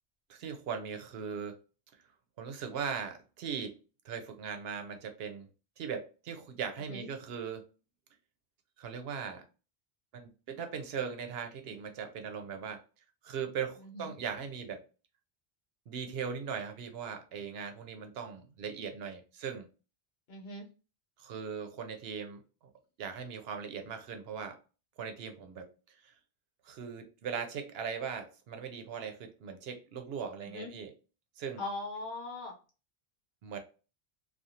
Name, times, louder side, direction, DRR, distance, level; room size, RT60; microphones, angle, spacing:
voice 1, 0.3-1.5 2.4-3.7 4.0-5.5 5.8-7.6 8.8-9.4 10.1-12.8 13.2-14.8 15.9-19.7 21.2-22.4 23.0-24.6 25.0-25.7 26.0-26.1 26.6-30.9 31.4-31.6 33.4-33.6, right 6 dB, 75° right, 0.8 m, -39 dB
voice 2, 20.3-20.7 30.4-30.7 31.6-32.5, left 2 dB, 80° left, 1.0 m, -40 dB
2.4 x 2.3 x 2.7 m
omnidirectional pair, 1.0 m